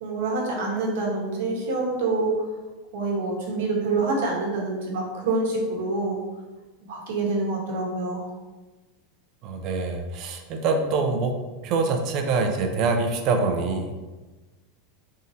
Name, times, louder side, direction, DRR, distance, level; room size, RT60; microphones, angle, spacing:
voice 1, 0.0-2.3 2.9-6.2 6.9-8.2, right 3 dB, 75° right, -1 dB, 1.2 m, -26 dB
voice 2, 9.4-11.3 11.6-13.9, right 4 dB, 45° right, 5 dB, 0.5 m, -25 dB
3.7 x 2.7 x 4.1 m, 1.2 s
supercardioid pair, 140°, 0 cm